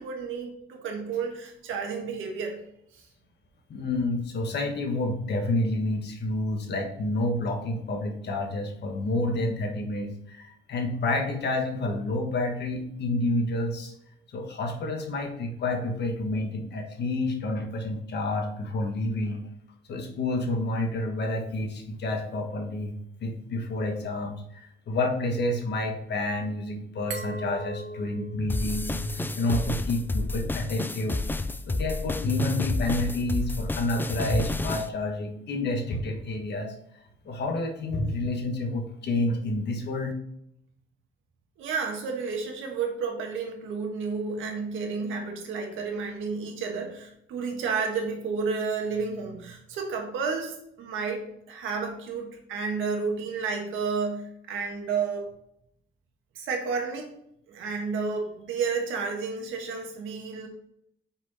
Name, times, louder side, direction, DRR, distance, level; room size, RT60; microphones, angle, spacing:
voice 1, 0.0-2.6 2.9-3.0 41.6-55.3 56.3-57.1 57.5-60.5, right 5 dB, 90° right, 2 dB, 1.5 m, -31 dB
voice 2, 3.7-13.9 14.3-19.5 19.9-31.2 31.7-36.7 37.2-40.1, left 2 dB, 60° left, 3 dB, 1.4 m, -29 dB
Glass, 27.1-29.9, right 2 dB, 65° right, 1.2 m, -40 dB
sound 1, 28.5-34.9, left 2 dB, 10° left, 0.4 m, -30 dB
5.8 x 4.6 x 4.1 m, 0.75 s
cardioid pair, 90°, 20 cm